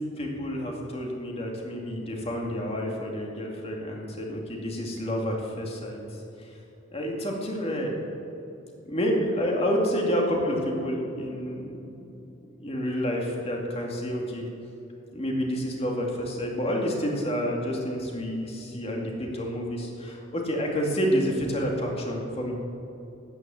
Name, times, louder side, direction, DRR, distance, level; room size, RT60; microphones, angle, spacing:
voice 1, 0.2-6.0 6.9-8.0 8.8-12.0 12.6-14.5 15.1-22.5, equal, 30° left, 0 dB, 2.4 m, -29 dB
13.0 x 9.6 x 7.6 m, 2.9 s
head